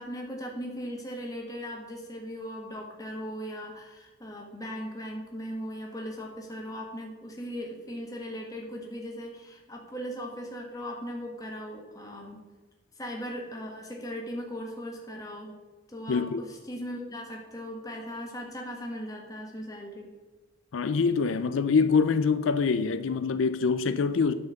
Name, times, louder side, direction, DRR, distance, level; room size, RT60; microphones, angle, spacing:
voice 1, 0.0-12.4 12.9-15.6 15.9-20.1, equal, 20° left, 1.5 m, -38 dB
voice 2, 16.1-16.4 20.7-24.3, left 5 dB, 85° left, 0.4 m, -25 dB
9.6 x 4.4 x 7.0 m
head